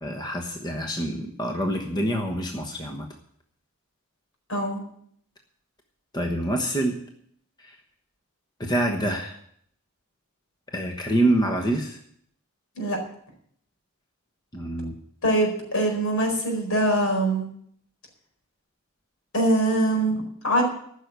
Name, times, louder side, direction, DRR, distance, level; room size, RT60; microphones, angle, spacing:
voice 1, 0.0-3.1 6.1-7.0 7.6-7.8 8.6-9.4 10.7-12.0 14.5-14.9, right 1 dB, 20° left, 3 dB, 1.1 m, -26 dB
voice 2, 4.5-4.8 12.8-13.0 15.2-17.5 19.3-20.6, right 1 dB, 70° left, 2 dB, 4.6 m, -23 dB
14.5 x 6.5 x 8.1 m, 0.66 s
head